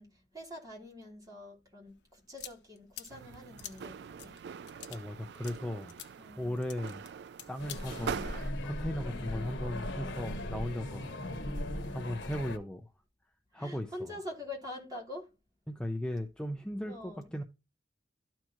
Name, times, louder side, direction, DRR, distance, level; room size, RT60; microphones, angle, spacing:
voice 1, 0.0-4.4 6.1-6.6 7.9-8.3 9.0-9.5 10.6-10.9 11.2-11.5 13.6-15.3 16.8-17.3, left 1 dB, 20° right, 3.0 m, -46 dB
sound 1, 1.9-7.8, left 11 dB, 75° left, 1.0 m, -49 dB
sound 2, 3.1-8.5, right 7 dB, 65° right, 0.3 m, -43 dB
voice 2, 4.9-6.0 6.4-7.0 7.5-8.4 8.6-11.2 11.9-12.9 13.5-14.2 15.7-17.4, left 1 dB, 5° left, 0.6 m, -37 dB
sound 3, 7.6-12.6, left 1 dB, 90° left, 1.2 m, -38 dB
12.5 x 4.5 x 2.9 m
head